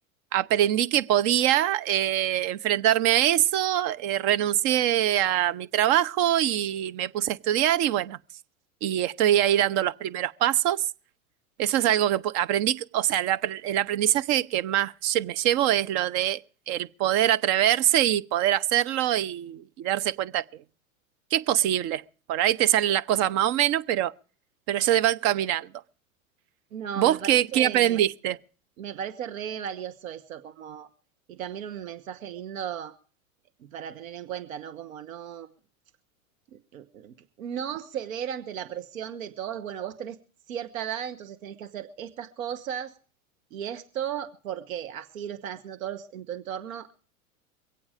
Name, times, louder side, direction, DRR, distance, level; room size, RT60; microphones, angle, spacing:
voice 1, 0.3-8.2 8.8-10.8 11.6-16.4 16.7-20.6 21.3-22.0 22.3-24.1 24.7-25.7 27.0-28.4, right 12 dB, 45° right, 0.8 m, -24 dB
voice 2, 26.7-28.0 28.8-30.9 31.3-32.9 33.6-35.5 36.5-40.2 40.5-42.9 43.5-46.9, right 9 dB, 70° right, 1.3 m, -36 dB
23.5 x 8.7 x 5.0 m
hypercardioid pair, 95°, 42 cm